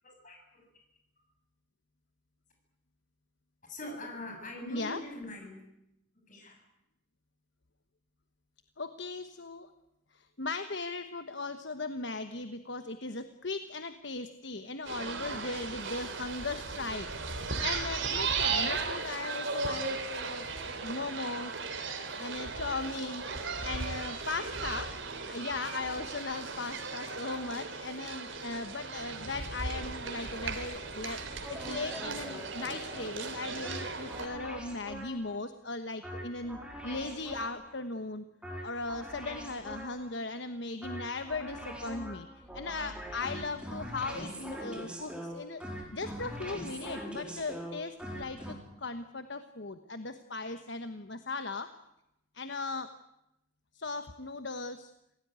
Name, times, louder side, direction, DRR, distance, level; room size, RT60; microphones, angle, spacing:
voice 1, 0.0-0.6 3.7-5.6 6.1-6.6, left 1 dB, 40° left, 3 dB, 7.9 m, -43 dB
voice 2, 4.7-5.0 8.8-9.7 10.1-20.5 20.8-21.5 22.2-24.9 25.3-38.2 38.6-42.3 42.5-45.6 45.9-51.7 52.3-52.9 53.7-54.9, left 3 dB, 60° left, 9 dB, 1.2 m, -38 dB
sound 1, 14.8-34.3, right 4 dB, 65° right, 3.3 m, -36 dB
sound 2, 31.4-35.4 36.0-37.8 38.4-40.2 40.8-48.5, equal, 5° right, 4.2 m, -43 dB
27.5 x 18.0 x 9.6 m, 0.86 s
head